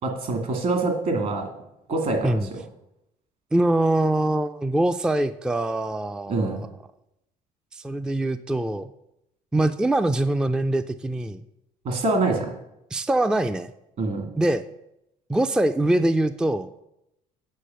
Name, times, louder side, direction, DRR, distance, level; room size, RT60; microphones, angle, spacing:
voice 1, 0.0-1.5 1.9-2.4 6.3-6.6 11.8-12.5 14.0-14.3, right 2 dB, 55° right, 4 dB, 2.1 m, -25 dB
voice 2, 3.5-6.7 7.7-8.9 9.5-11.4 12.9-13.7 14.4-14.6 15.3-16.7, right 1 dB, 5° right, 10 dB, 0.3 m, -23 dB
8.4 x 5.0 x 7.5 m, 0.84 s
cardioid pair, 110°, 16 cm